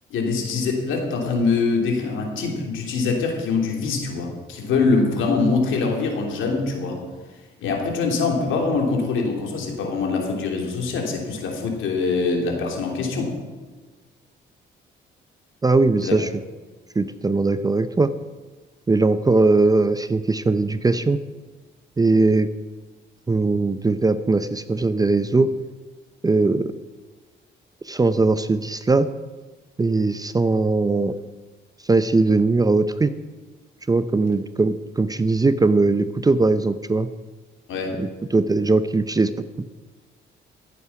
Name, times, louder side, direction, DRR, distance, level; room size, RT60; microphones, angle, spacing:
voice 1, 0.1-7.0 7.6-13.3 16.0-16.2 37.7-38.0, left 4 dB, 80° left, 1 dB, 3.0 m, -23 dB
voice 2, 15.6-16.3 17.0-18.1 18.9-21.2 22.0-22.5 23.3-25.5 26.2-26.7 27.8-29.1 29.8-31.1 31.9-33.1 33.9-37.1 38.0-39.3, right 3 dB, 20° right, 12 dB, 0.6 m, -20 dB
14.5 x 8.3 x 5.9 m, 1.3 s
cardioid pair, 90°, 20 cm